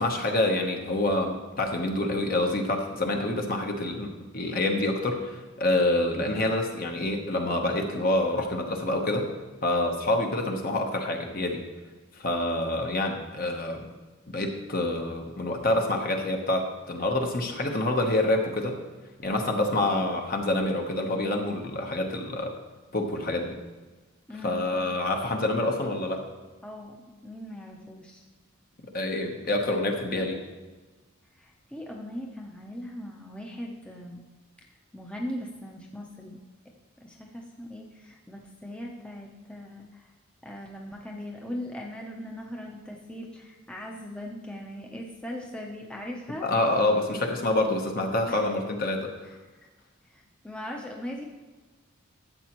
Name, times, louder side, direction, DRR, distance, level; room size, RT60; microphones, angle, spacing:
voice 1, 0.0-9.3 9.6-11.6 12.2-13.8 14.3-18.8 19.2-22.5 22.9-23.6 24.4-26.2 28.9-30.4 46.4-49.1, left 1 dB, 45° left, 3 dB, 1.0 m, -27 dB
voice 2, 24.3-24.6 26.6-26.9 27.2-28.2 31.4-34.2 34.9-36.4 37.0-40.1 40.4-46.4 48.3-48.5 49.2-49.3 50.1-51.2, left 1 dB, 5° left, -1 dB, 0.7 m, -39 dB
12.5 x 7.6 x 3.0 m, 1.3 s
head